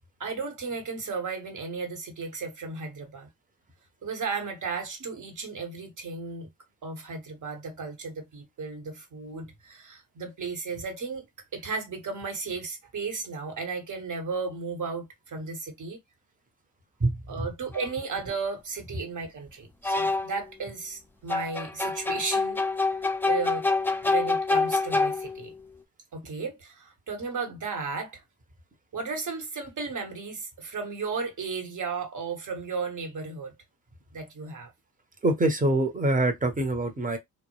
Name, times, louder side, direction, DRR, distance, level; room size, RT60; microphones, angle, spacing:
voice 1, 0.2-3.3 4.0-6.5 6.8-11.3 11.5-16.0 17.3-22.6 23.2-23.7 24.0-25.5 26.1-28.2 28.9-33.5 34.1-34.7, right 4 dB, 55° right, 1.0 m, -34 dB
voice 2, 17.0-17.5 35.2-37.2, right 1 dB, 20° right, 0.8 m, -25 dB
sound 1, 17.7-17.9 19.8-20.4 21.3-25.5, left 3 dB, 5° left, 0.4 m, -26 dB
2.1 x 2.1 x 2.9 m
supercardioid pair, 55°, 37 cm